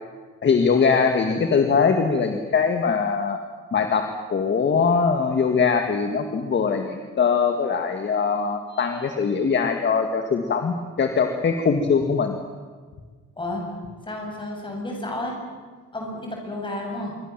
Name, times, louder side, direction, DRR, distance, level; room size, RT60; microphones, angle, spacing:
voice 1, 0.4-3.4 3.7-12.4, left 5 dB, 35° left, 6 dB, 1.9 m, -22 dB
voice 2, 14.0-15.4 15.9-17.2, left 1 dB, 15° left, 0 dB, 7.3 m, -31 dB
26.5 x 24.0 x 7.5 m, 1.5 s
cardioid pair, 170°, 31 cm